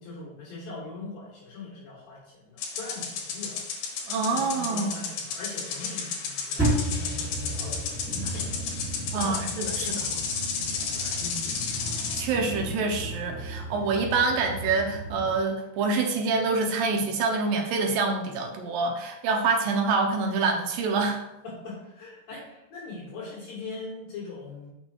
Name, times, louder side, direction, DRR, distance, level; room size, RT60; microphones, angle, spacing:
voice 1, 0.0-3.6 4.3-8.7 8.9-9.6 9.8-10.2 10.7-11.6 21.4-24.7, left 3 dB, 60° left, -7 dB, 3.6 m, -41 dB
sound 1, 2.6-12.3, left 6 dB, 80° left, 3.3 m, -33 dB
voice 2, 4.1-5.0 9.1-10.1 12.2-21.2, right 4 dB, 70° right, 2 dB, 2.4 m, -26 dB
sound 2, 6.6-15.4, right 1 dB, 5° right, 1.6 m, -33 dB
6.9 x 6.1 x 4.5 m, 0.90 s
omnidirectional pair, 4.7 m